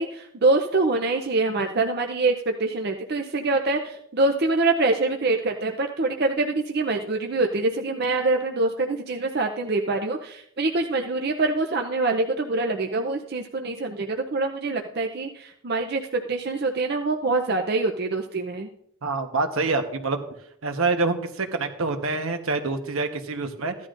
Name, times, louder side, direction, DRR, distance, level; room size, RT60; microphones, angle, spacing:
voice 1, 0.0-18.7, right 3 dB, 50° right, 3 dB, 0.6 m, -25 dB
voice 2, 19.0-20.2 20.6-23.7, right 3 dB, 75° right, 5 dB, 1.1 m, -26 dB
15.0 x 11.0 x 2.5 m, 0.74 s
head